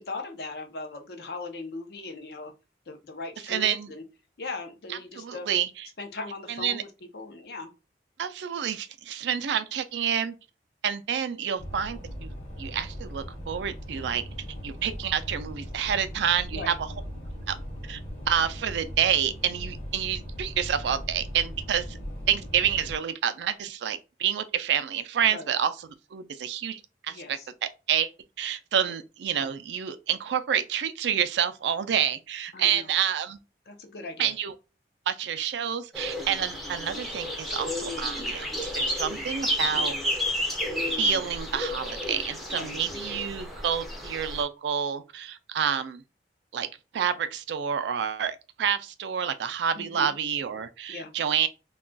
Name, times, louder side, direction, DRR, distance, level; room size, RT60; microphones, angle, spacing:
voice 1, 0.0-2.5 2.9-4.0 4.4-5.5 6.0-6.9 7.1-7.7 16.5-16.8 25.3-25.5 27.1-27.5 28.8-28.9 32.5-32.9 33.7-34.3 39.7-40.0 42.5-42.8 49.7-50.1 50.9-51.1, left 3 dB, 65° left, 0.6 m, -39 dB
voice 2, 3.4-3.9 4.9-5.9 6.5-6.8 8.2-10.3 10.8-12.3 12.6-14.2 14.6-16.9 17.5-17.6 17.9-18.0 18.3-22.0 22.3-28.1 28.4-33.4 34.2-34.5 35.1-40.0 40.4-40.5 40.8-46.0 46.5-46.7 46.9-51.5, right 8 dB, 80° right, 0.3 m, -28 dB
sound 1, 11.6-23.0, equal, 40° left, 0.9 m, -39 dB
sound 2, 35.9-44.4, left 1 dB, ahead, 0.5 m, -31 dB
2.3 x 2.2 x 3.8 m
head